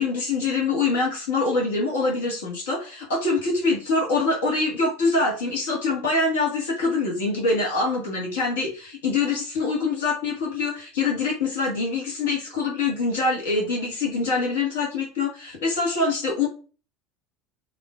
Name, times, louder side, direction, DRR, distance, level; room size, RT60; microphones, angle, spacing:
voice 1, 0.0-16.5, left 3 dB, 70° left, -2 dB, 1.6 m, -24 dB
7.6 x 2.6 x 2.4 m, 0.35 s
figure-of-eight pair, 70°, 0 cm